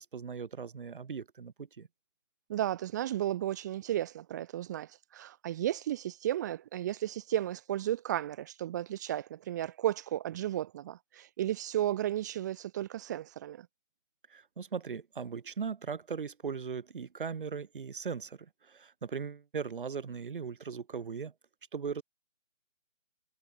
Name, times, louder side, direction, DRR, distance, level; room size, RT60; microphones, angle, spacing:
voice 1, 0.0-1.9 14.3-21.3 21.7-22.0, right 6 dB, 45° right, 1.9 m, -39 dB
voice 2, 2.5-13.7, right 12 dB, 15° right, 1.4 m, -34 dB
figure-of-eight pair, 155°, 37 cm